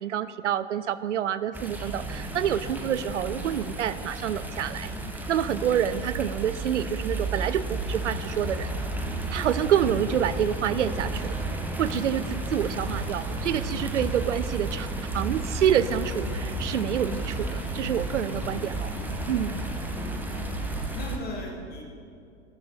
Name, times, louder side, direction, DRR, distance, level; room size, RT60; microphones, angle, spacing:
voice 1, 0.0-4.9 5.3-8.7 9.3-11.4 11.8-14.9 15.1-18.9 19.3-19.6, right 9 dB, 85° right, 15 dB, 0.5 m, -27 dB
sound 1, 1.5-21.2, right 2 dB, 5° right, 0.7 m, -32 dB
sound 2, 10.9-20.6, left 2 dB, 85° left, 1.2 m, -46 dB
voice 2, 19.9-21.8, left 2 dB, 25° left, 0 dB, 1.7 m, -39 dB
12.5 x 6.0 x 4.1 m, 2.4 s
hypercardioid pair, 95°, 35 cm